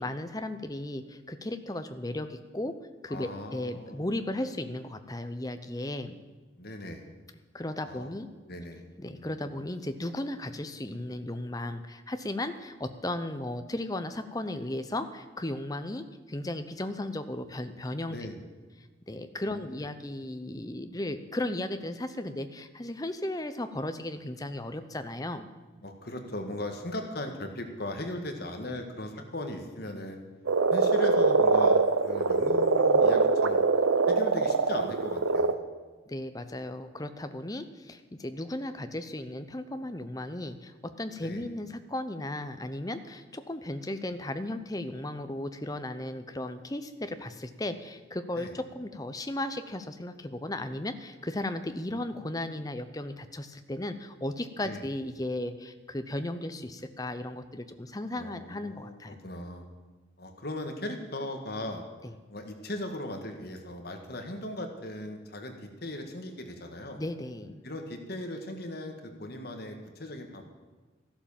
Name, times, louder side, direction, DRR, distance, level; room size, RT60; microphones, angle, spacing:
voice 1, 0.0-2.8 3.0-6.2 7.5-8.3 9.0-18.2 19.1-25.5 36.1-59.2 62.0-62.1 66.9-67.6, left 1 dB, 20° left, 9 dB, 0.7 m, -35 dB
voice 2, 3.1-4.1 6.6-7.1 7.8-8.1 8.5-8.8 9.2-9.7 18.1-18.4 19.5-19.8 25.8-30.2 30.7-33.7 34.1-35.6 41.2-41.5 48.4-48.5 51.9-52.5 54.6-54.9 58.1-59.7 60.2-61.8 62.3-67.0 67.6-70.4, left 1 dB, 50° left, 4 dB, 1.8 m, -38 dB
Frog, 30.5-35.5, right 4 dB, 90° right, 0.8 m, -23 dB
14.0 x 11.5 x 7.3 m, 1.3 s
head